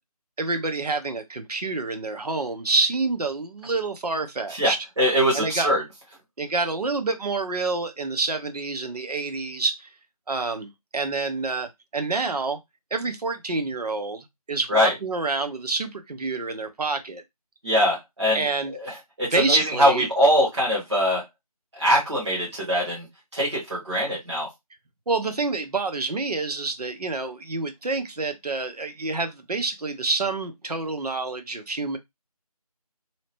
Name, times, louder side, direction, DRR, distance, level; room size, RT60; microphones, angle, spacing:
voice 1, 0.4-4.8 5.3-5.7 6.4-9.9 10.3-12.6 12.9-17.2 18.3-18.7 19.3-20.1 25.1-32.0, right 3 dB, 75° right, 0.7 m, -27 dB
voice 2, 4.5-5.8 14.7-14.9 17.6-18.4 18.7-21.2 21.7-23.1 23.3-24.5, equal, 45° right, 1.2 m, -22 dB
2.9 x 2.0 x 2.9 m
figure-of-eight pair, 175°, 20 cm